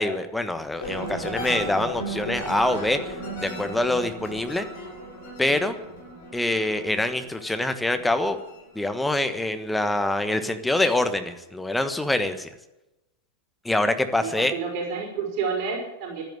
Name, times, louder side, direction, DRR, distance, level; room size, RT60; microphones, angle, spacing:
voice 1, 0.0-4.7 5.4-5.7 6.3-8.4 8.7-12.5 13.6-14.5, left 1 dB, 5° left, 9 dB, 1.4 m, -25 dB
sound 1, 0.8-9.6 10.0-10.5, right 1 dB, 50° left, 7.2 m, -36 dB
voice 2, 14.2-16.2, right 5 dB, 45° right, 0 dB, 5.4 m, -29 dB
13.0 x 10.5 x 9.5 m, 0.95 s
figure-of-eight pair, 90°, 0 cm